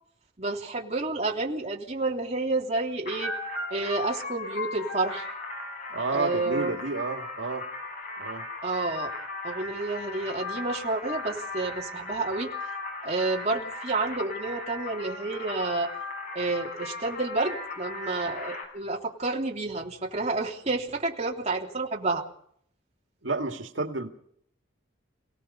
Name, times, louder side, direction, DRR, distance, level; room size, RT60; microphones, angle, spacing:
voice 1, 0.4-3.3 3.7-5.3 6.1-6.8 8.6-9.1 9.4-12.5 13.0-15.9 16.3-22.2, right 3 dB, 35° right, -1 dB, 3.2 m, -30 dB
sound 1, 3.1-18.6, left 2 dB, 45° left, 7.0 m, -37 dB
voice 2, 5.9-7.7 8.2-8.4 23.2-24.1, right 3 dB, 85° right, 4 dB, 2.0 m, -31 dB
28.0 x 18.0 x 5.6 m, 0.66 s
head